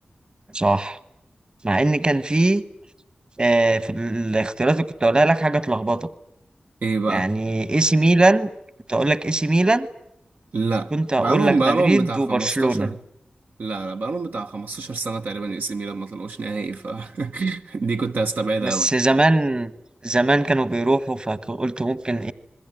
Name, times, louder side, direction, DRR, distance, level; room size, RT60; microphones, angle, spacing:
voice 1, 0.5-1.0 1.6-2.6 3.4-6.1 7.1-8.5 8.9-9.9 10.9-12.9 18.6-19.7 20.0-22.3, right 2 dB, 30° right, 1.3 m, -20 dB
voice 2, 6.8-7.3 10.5-13.0 13.6-18.9, right 3 dB, 75° right, 1.2 m, -25 dB
27.0 x 21.5 x 9.2 m
wide cardioid pair, 85°, 3 cm